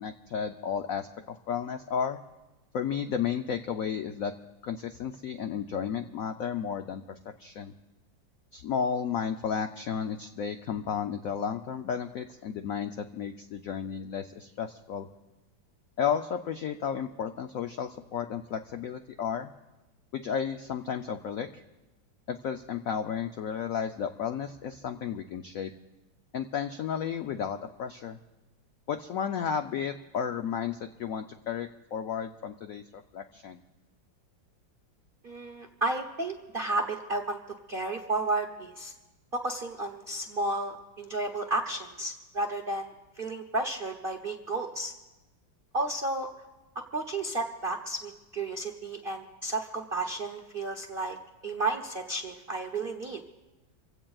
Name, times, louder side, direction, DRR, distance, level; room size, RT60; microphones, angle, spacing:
voice 1, 0.0-2.2 2.7-4.3 4.6-7.0 7.4-7.7 8.5-15.1 16.0-19.5 20.1-21.6 22.3-25.7 26.3-28.2 28.9-33.6, left 7 dB, 75° left, 7 dB, 0.7 m, -33 dB
voice 2, 35.2-37.4 37.7-38.9 39.3-44.9 45.7-46.3 46.9-51.2 51.4-53.2, right 2 dB, 50° right, 4 dB, 0.6 m, -32 dB
27.5 x 16.0 x 2.4 m, 1.1 s
omnidirectional pair, 2.1 m